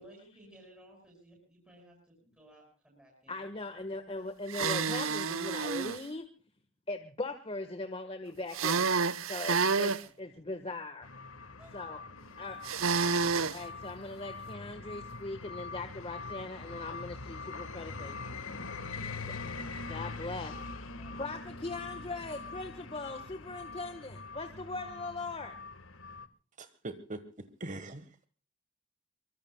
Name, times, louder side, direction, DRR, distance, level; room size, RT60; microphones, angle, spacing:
voice 1, 0.0-3.8 10.0-10.5 11.6-12.9 21.0-21.3, right 1 dB, 5° right, -1 dB, 7.3 m, -59 dB
voice 2, 3.3-6.3 6.9-8.9 9.3-11.1 11.7-12.0 12.4-12.6 13.5-18.2 19.9-20.6 21.1-25.5, left 2 dB, 30° left, 8 dB, 1.4 m, -40 dB
sound 1, 4.5-6.0 8.5-10.0 12.6-13.6, right 5 dB, 85° right, 0.9 m, -29 dB
sound 2, 11.0-26.3, left 3 dB, 90° left, 1.6 m, -43 dB
voice 3, 26.6-28.3, right 2 dB, 40° right, 11 dB, 1.4 m, -43 dB
25.0 x 24.0 x 2.3 m, 0.36 s
head